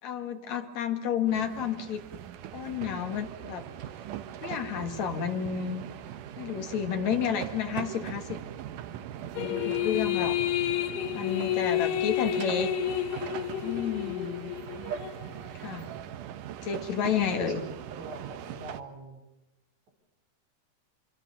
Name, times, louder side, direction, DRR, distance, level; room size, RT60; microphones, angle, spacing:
voice 1, 0.0-2.0 2.5-3.6 4.4-5.8 6.4-8.4 9.4-10.4 11.2-12.7 13.6-14.5 15.5-15.9 16.6-17.6, left 7 dB, 55° left, 6 dB, 2.6 m, -31 dB
sound 1, 1.3-18.8, right 10 dB, 70° right, 2.1 m, -41 dB
sound 2, 9.4-15.2, left 12 dB, 85° left, 3.4 m, -30 dB
voice 2, 10.8-11.2 17.5-17.7 18.0-19.2, right 1 dB, 45° right, 1 dB, 5.4 m, -45 dB
25.5 x 25.0 x 7.1 m, 1.0 s
omnidirectional pair, 4.6 m